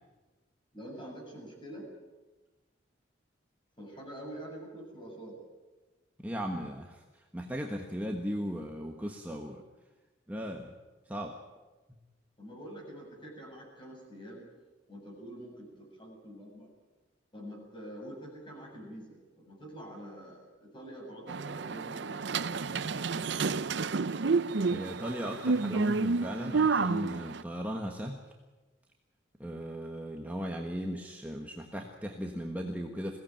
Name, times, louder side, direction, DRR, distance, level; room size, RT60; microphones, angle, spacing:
voice 1, 0.7-1.9 3.8-5.4 12.4-14.5 14.9-16.7 17.3-23.8, right 1 dB, 25° left, 0 dB, 7.5 m, -46 dB
voice 2, 6.2-9.6 10.3-10.8 11.1-11.3 24.7-28.2 29.4-33.2, equal, 10° right, 1 dB, 1.4 m, -37 dB
sound 1, 21.3-27.4, right 4 dB, 65° right, 0.6 m, -30 dB
22.0 x 17.0 x 9.0 m, 1.2 s
head